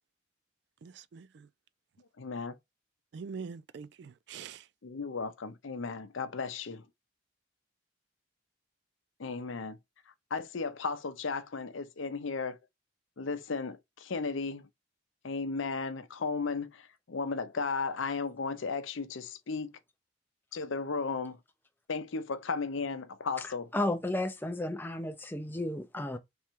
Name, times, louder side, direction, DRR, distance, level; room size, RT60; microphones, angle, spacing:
voice 1, 0.8-1.5 3.1-4.7, right 5 dB, 55° right, 0.3 m, -44 dB
voice 2, 2.2-2.6 4.8-6.9 9.2-9.8 10.3-12.6 13.2-14.7 15.2-19.7 20.5-21.4 21.9-23.7, left 4 dB, 75° left, 0.6 m, -35 dB
voice 3, 23.4-26.2, left 1 dB, 10° left, 0.5 m, -33 dB
3.5 x 3.2 x 4.5 m
head